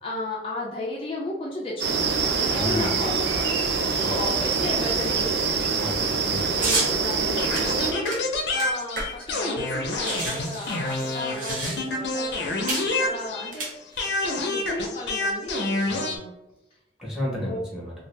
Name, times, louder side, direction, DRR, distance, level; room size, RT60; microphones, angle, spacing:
voice 1, 0.0-5.6 6.6-16.3 17.4-17.6, left 2 dB, 30° left, -4 dB, 0.4 m, -34 dB
sound 1, 1.8-7.9, right 5 dB, 65° right, 0.5 m, -25 dB
voice 2, 2.5-3.0 3.8-4.1 5.8-6.6 15.9-16.0 17.0-17.9, left 1 dB, 5° right, -5 dB, 0.9 m, -32 dB
sound 2, 6.6-6.9 7.5-9.4 9.6-9.7 9.9-12.1 12.7-12.9 13.5-14.2, right 2 dB, 45° right, 0.8 m, -30 dB
sound 3, 7.4-13.6 14.0-16.2, left 2 dB, 75° left, 0.6 m, -28 dB
2.7 x 2.4 x 3.2 m, 0.91 s
head